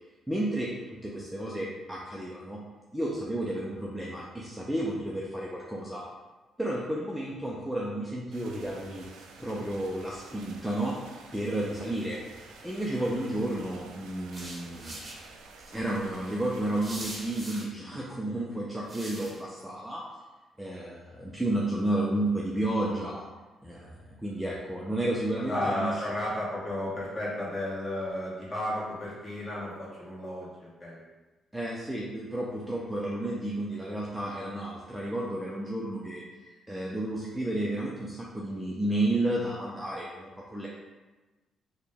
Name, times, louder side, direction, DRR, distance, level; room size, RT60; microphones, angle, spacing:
voice 1, 0.3-0.7 1.0-2.6 2.9-6.0 6.6-9.1 9.4-15.0 15.7-20.0 20.6-23.2 23.6-25.9 31.5-40.7, right 1 dB, 5° right, -5 dB, 0.5 m, -32 dB
sound 1, 8.3-17.4, right 4 dB, 90° right, 0.4 m, -50 dB
sound 2, 14.3-15.2 16.8-17.7 18.9-19.4, right 1 dB, 25° right, 0.9 m, -41 dB
voice 2, 25.4-31.0, left 1 dB, 25° left, -7 dB, 1.5 m, -33 dB
4.0 x 2.2 x 3.4 m, 1.2 s
cardioid pair, 90°, 0 cm